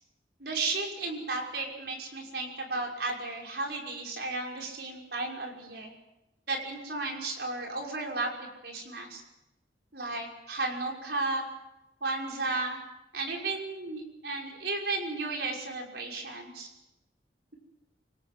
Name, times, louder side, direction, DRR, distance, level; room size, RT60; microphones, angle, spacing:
voice 1, 0.4-5.9 6.5-8.3 8.6-9.2 9.9-11.5 12.0-12.8 13.1-16.7, right 3 dB, 70° right, 1 dB, 5.9 m, -34 dB
25.5 x 19.0 x 7.8 m, 0.92 s
head